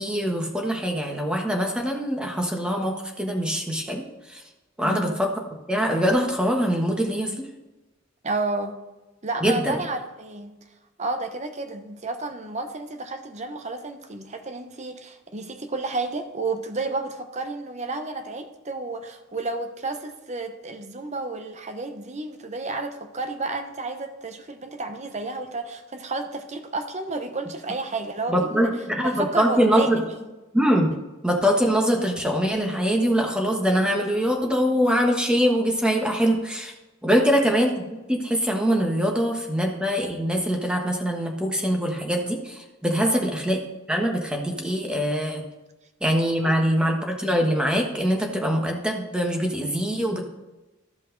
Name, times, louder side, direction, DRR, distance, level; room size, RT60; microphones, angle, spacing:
voice 1, 0.0-4.4 4.8-5.3 5.7-7.5 9.4-9.8 28.3-30.1 30.5-30.9 31.2-36.7 37.0-43.6 43.9-45.4 46.0-50.2, equal, 5° right, 1 dB, 1.2 m, -23 dB
voice 2, 4.8-5.1 8.2-8.8 9.2-10.5 11.0-28.7 29.0-30.2 43.0-43.3 46.4-46.6, right 3 dB, 35° right, 7 dB, 0.9 m, -31 dB
14.0 x 5.3 x 3.9 m, 1.1 s
head